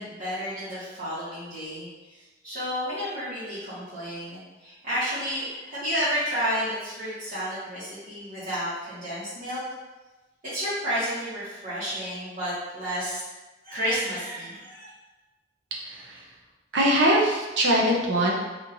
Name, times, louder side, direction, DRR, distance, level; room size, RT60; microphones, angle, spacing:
voice 1, 0.0-9.6 10.5-13.2 13.6-14.9, equal, 55° right, -14 dB, 1.4 m, -31 dB
voice 2, 15.7-16.2 16.7-18.3, right 1 dB, 85° right, -3 dB, 0.8 m, -22 dB
4.1 x 2.9 x 2.7 m, 1.2 s
head